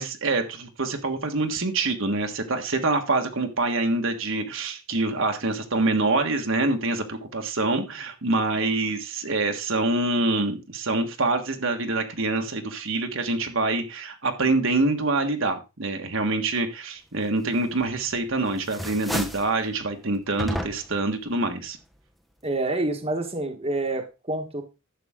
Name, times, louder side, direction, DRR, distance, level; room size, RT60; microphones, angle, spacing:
voice 1, 0.0-21.8, right 2 dB, 60° right, 4 dB, 1.5 m, -25 dB
sound 1, 17.8-18.3 18.6-19.5 20.4-21.1, equal, ahead, 0.9 m, -31 dB
voice 2, 22.4-24.6, right 2 dB, 25° right, 4 dB, 1.4 m, -27 dB
11.5 x 7.9 x 3.7 m, 0.28 s
head